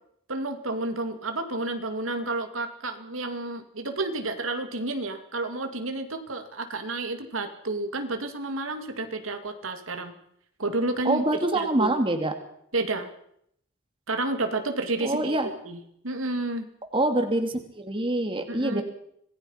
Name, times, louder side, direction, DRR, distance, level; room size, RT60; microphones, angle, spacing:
voice 1, 0.3-10.1 10.6-11.2 11.5-12.0 12.7-13.1 14.1-15.4 15.6-15.8 16.0-16.7 18.5-18.8, right 2 dB, 80° right, 6 dB, 2.6 m, -30 dB
voice 2, 11.0-12.3 15.0-15.5 16.9-18.8, right 1 dB, 25° right, 5 dB, 2.7 m, -25 dB
26.5 x 19.0 x 5.8 m, 0.70 s
head